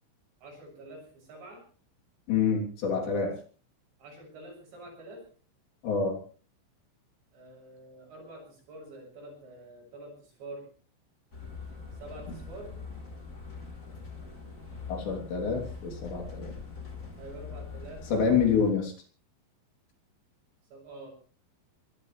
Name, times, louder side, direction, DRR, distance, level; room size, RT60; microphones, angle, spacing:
voice 1, 0.4-1.6 4.0-5.2 7.3-10.7 12.0-12.7 17.2-18.0 20.7-21.1, right 2 dB, 60° right, 0 dB, 9.1 m, -46 dB
voice 2, 2.3-3.4 5.8-6.2 14.9-16.5 18.1-18.9, left 6 dB, 60° left, 2 dB, 5.3 m, -27 dB
sound 1, 11.3-18.7, left 4 dB, 15° left, 3.7 m, -43 dB
24.0 x 16.0 x 3.3 m, 0.39 s
omnidirectional pair, 5.7 m